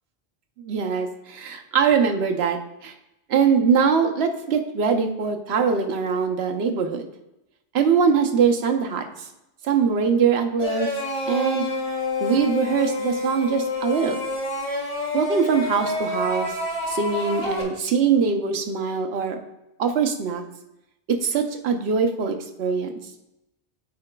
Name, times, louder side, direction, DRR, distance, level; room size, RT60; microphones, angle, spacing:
voice 1, 0.6-2.9 3.3-7.0 7.7-9.3 9.6-10.9 11.3-11.7 12.2-14.2 15.1-16.5 16.9-19.4 19.8-20.4 21.1-22.9, right 6 dB, 75° right, 6 dB, 0.9 m, -22 dB
sound 1, 10.6-17.6, left 2 dB, 55° left, 1.8 m, -28 dB
9.5 x 4.8 x 2.2 m, 0.89 s
omnidirectional pair, 1.1 m